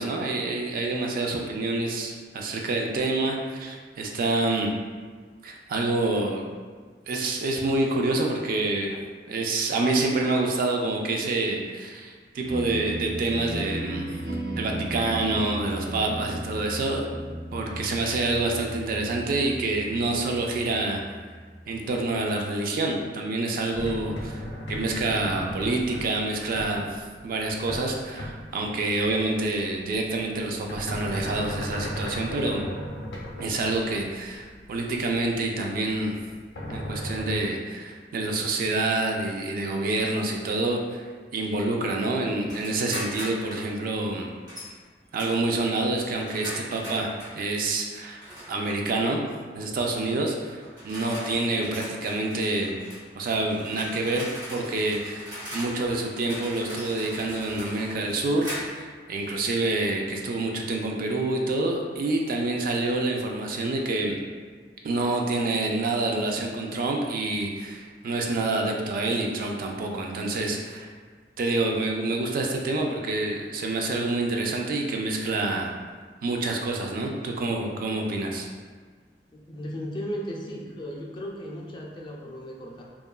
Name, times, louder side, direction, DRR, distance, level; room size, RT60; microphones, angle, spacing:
voice 1, 0.0-4.7 5.4-6.4 7.1-9.0 9.3-14.1 14.6-17.1 17.5-21.0 21.7-24.4 24.7-32.6 33.4-36.1 36.7-41.0 41.3-44.3 45.1-48.2 48.5-49.2 49.5-52.7 53.2-64.2 64.8-70.9 71.4-75.7 76.2-78.5, right 2 dB, 55° right, 0 dB, 0.3 m, -27 dB
sound 1, 12.4-22.5, right 1 dB, 80° right, 0.8 m, -36 dB
sound 2, 23.7-27.9 28.2-28.6 29.4-35.5 35.9-37.4, equal, 85° left, 0.5 m, -36 dB
sound 3, 42.5-43.7 44.5-44.7 45.2-47.4 48.2-48.7 49.8-50.0 50.6-58.9, equal, 20° right, 0.7 m, -40 dB
voice 2, 79.3-82.8, equal, 25° left, -2 dB, 0.3 m, -36 dB
2.8 x 2.4 x 2.3 m, 1.5 s
head